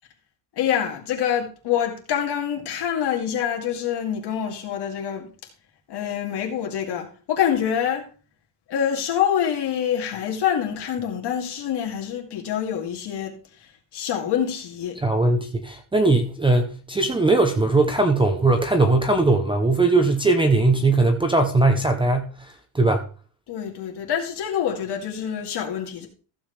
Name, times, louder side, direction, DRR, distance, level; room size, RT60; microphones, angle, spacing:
voice 1, 0.6-5.3 5.9-8.1 8.7-15.0 23.5-26.1, left 9 dB, 50° left, 2.5 m, -26 dB
voice 2, 15.0-22.3 22.7-23.0, right 2 dB, 10° right, 0.7 m, -19 dB
15.0 x 7.3 x 3.2 m
cardioid pair, 175°, 49 cm